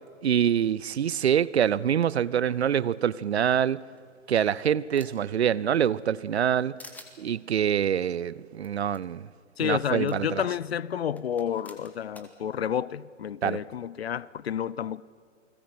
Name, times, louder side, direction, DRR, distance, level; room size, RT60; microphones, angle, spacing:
voice 1, 0.2-3.8 4.3-6.8 7.2-9.3 9.6-10.4 13.4-13.6, right 9 dB, 55° right, 0.7 m, -25 dB
sound 1, 4.0-5.4 5.8-6.5 6.8-7.1 8.6-8.7 8.9-9.0 10.1-10.2 11.2-12.3, left 2 dB, 5° left, 1.5 m, -49 dB
voice 2, 9.6-15.0, left 9 dB, 55° left, 0.6 m, -30 dB
29.0 x 21.0 x 6.1 m
figure-of-eight pair, 125°, 38 cm